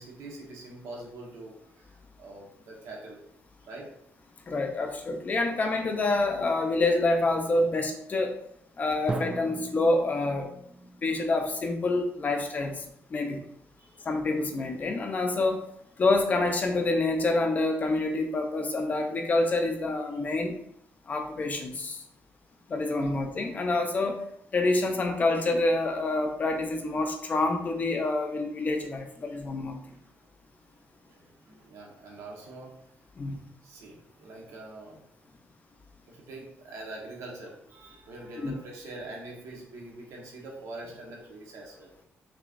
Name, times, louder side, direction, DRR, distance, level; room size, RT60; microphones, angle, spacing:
voice 1, 0.0-3.2 3.6-3.9 13.8-14.1 20.1-20.2 29.2-29.4 31.1-33.1 33.6-35.0 36.1-41.9, right 2 dB, 80° right, -2 dB, 1.4 m, -44 dB
voice 2, 4.5-8.4 8.8-10.5 11.0-12.8 13.1-13.4 14.0-15.6 16.0-20.6 21.1-22.0 22.7-24.2 24.5-29.8 33.2-33.4 38.4-38.5, left 2 dB, 30° left, 4 dB, 0.6 m, -27 dB
Drum, 9.1-12.8, right 2 dB, 20° right, 0.4 m, -39 dB
5.9 x 3.0 x 2.5 m, 0.72 s
cardioid pair, 145°, 5 cm